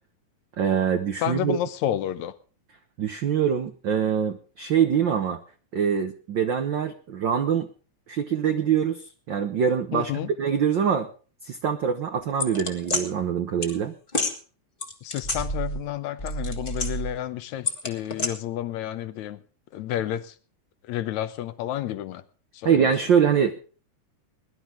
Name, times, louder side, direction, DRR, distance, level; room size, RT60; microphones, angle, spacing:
voice 1, 0.6-1.6 3.0-5.4 5.7-7.7 8.1-10.1 10.4-11.1 11.4-13.9 22.6-23.6, right 7 dB, 65° right, 1.1 m, -24 dB
voice 2, 1.2-2.4 9.9-10.3 15.0-19.4 19.7-20.4 20.9-22.2 22.5-22.9, left 12 dB, 75° left, 2.1 m, -30 dB
sound 1, 12.4-13.0 13.6-13.7 14.1-14.3 14.8-15.9 16.2-17.2 17.7-18.3, left 1 dB, 25° left, 1.3 m, -28 dB
21.0 x 11.5 x 3.7 m
omnidirectional pair, 3.4 m